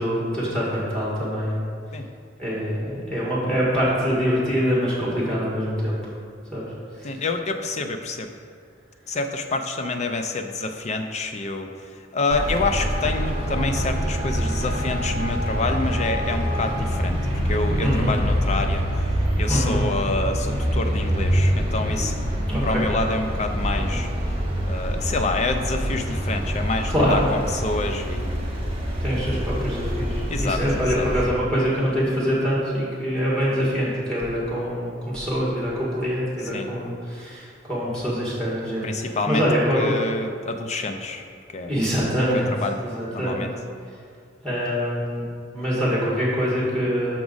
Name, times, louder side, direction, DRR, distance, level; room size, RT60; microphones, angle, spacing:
voice 1, 0.0-1.6 2.4-6.0 6.5-6.6 7.0-7.2 17.8-18.2 19.5-19.9 22.5-22.9 23.7-23.9 26.9-27.2 29.0-39.9 41.7-42.5 42.8-43.4 44.4-45.2 45.5-47.2, equal, 5° left, -7 dB, 1.7 m, -24 dB
voice 2, 7.0-8.3 9.1-11.7 12.1-17.2 17.4-19.1 19.4-22.1 22.6-24.1 24.7-28.4 29.3-29.4 30.3-31.1 36.5-36.7 38.8-39.4 39.7-41.2 41.5-41.7 42.3-42.8 43.1-43.5, left 3 dB, 35° left, 6 dB, 0.5 m, -27 dB
Traffic noise roadway noise, 12.3-31.3, equal, 30° right, 1.1 m, -25 dB
6.0 x 6.0 x 3.9 m, 2.3 s
head